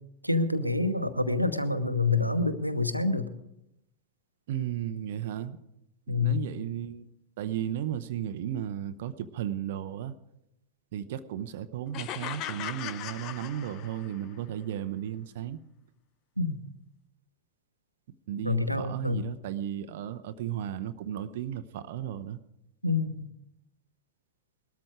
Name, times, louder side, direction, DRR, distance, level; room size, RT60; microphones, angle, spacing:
voice 1, 0.2-3.3 6.1-6.4 16.4-16.6 18.4-19.2 22.8-23.3, left 3 dB, 90° right, 10 dB, 1.0 m, -27 dB
voice 2, 4.5-5.6 6.1-7.1 7.4-10.1 10.9-15.6 18.3-22.4, right 10 dB, 55° right, 11 dB, 0.7 m, -34 dB
sound 1, 11.9-14.3, left 11 dB, 40° left, 0.8 m, -38 dB
20.0 x 13.0 x 4.8 m, 0.85 s
figure-of-eight pair, 90°, 0 cm